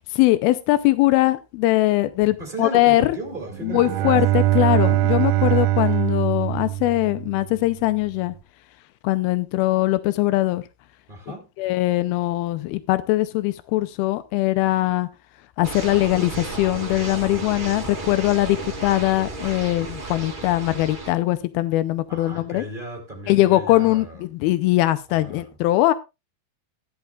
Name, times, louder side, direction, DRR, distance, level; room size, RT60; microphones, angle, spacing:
voice 1, 0.0-3.1 3.6-8.4 9.0-10.6 11.6-15.1 15.6-22.6 23.3-25.9, left 17 dB, 90° left, 2.6 m, -21 dB
voice 2, 2.4-4.2 11.1-11.5 22.1-24.2 25.1-25.6, right 1 dB, 15° right, 2.1 m, -35 dB
Bowed string instrument, 3.5-7.6, right 15 dB, 80° right, 2.4 m, -22 dB
sound 1, 15.6-21.1, right 3 dB, 40° right, 0.6 m, -33 dB
16.0 x 10.5 x 2.4 m
omnidirectional pair, 4.2 m